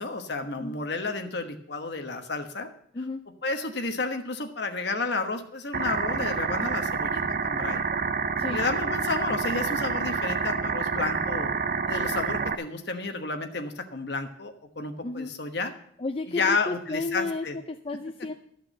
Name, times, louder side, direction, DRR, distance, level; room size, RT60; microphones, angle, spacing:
voice 1, 0.0-2.7 3.4-7.8 8.5-11.5 11.8-15.7 16.3-17.6, left 3 dB, 55° left, 6 dB, 1.3 m, -31 dB
sound 1, 5.7-12.5, right 5 dB, 45° right, 0.5 m, -28 dB
voice 2, 16.0-18.3, left 3 dB, 30° left, 6 dB, 0.4 m, -32 dB
13.0 x 5.8 x 7.7 m, 0.68 s
head